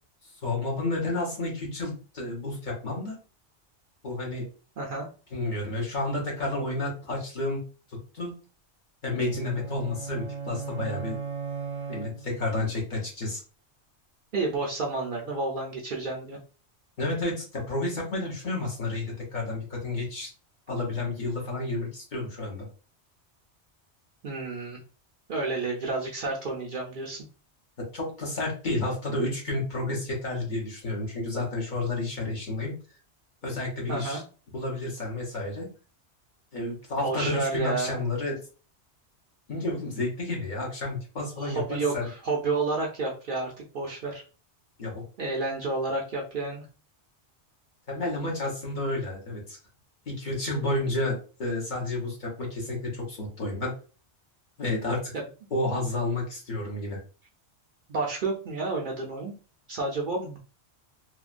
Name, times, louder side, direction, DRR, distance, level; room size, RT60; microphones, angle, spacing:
voice 1, 0.4-3.2 4.0-4.5 5.3-7.6 8.1-8.3 9.0-11.2 11.9-13.4 17.0-20.3 20.7-22.6 27.8-32.7 33.4-34.2 34.5-35.7 36.5-38.4 39.5-42.1 44.8-45.0 47.9-49.6 50.1-53.7 54.6-55.1 55.5-57.0, left 2 dB, 45° left, -2 dB, 0.9 m, -31 dB
voice 2, 4.8-5.1 14.3-16.4 24.2-24.8 25.3-27.2 33.9-34.2 37.0-38.0 41.4-44.2 45.2-46.7 57.9-59.3 59.7-60.4, right 3 dB, 55° right, -1 dB, 0.6 m, -30 dB
sound 1, 9.1-12.6, right 6 dB, 80° right, 0.9 m, -37 dB
3.0 x 2.2 x 2.4 m, 0.36 s
omnidirectional pair, 1.2 m